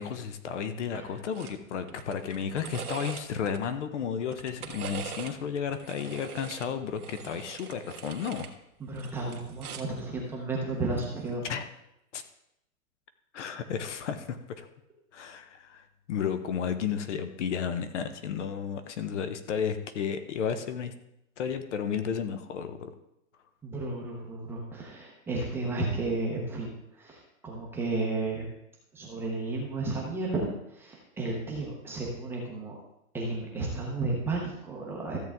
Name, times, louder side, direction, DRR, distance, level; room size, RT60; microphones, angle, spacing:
voice 1, 0.0-8.5 11.4-11.7 12.1-12.2 13.3-14.7 15.1-20.9 21.4-22.9, left 7 dB, 55° left, 10 dB, 0.9 m, -33 dB
sound 1, 1.3-1.6 1.9-3.6 4.2-5.4 5.7-8.5 8.9-10.0 11.2-11.4, right 7 dB, 90° right, 1.5 m, -42 dB
voice 2, 8.8-11.4 23.6-26.7 27.0-28.5 28.9-32.8 33.1-35.2, right 3 dB, 5° right, -3 dB, 0.8 m, -33 dB
14.0 x 7.6 x 3.6 m, 0.83 s
hypercardioid pair, 165°, 43 cm